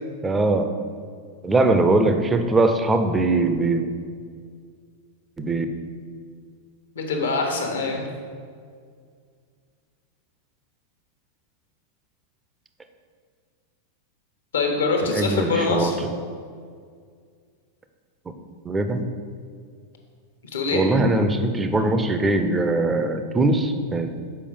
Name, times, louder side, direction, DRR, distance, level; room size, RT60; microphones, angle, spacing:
voice 1, 0.2-0.7 1.4-3.8 5.4-5.7 15.0-15.9 18.6-19.0 20.7-24.2, right 2 dB, 15° right, 7 dB, 0.6 m, -21 dB
voice 2, 6.9-8.0 14.5-15.9 20.5-20.8, left 3 dB, 65° left, 2 dB, 1.2 m, -24 dB
6.8 x 4.9 x 5.2 m, 2.1 s
figure-of-eight pair, 90°, 0 cm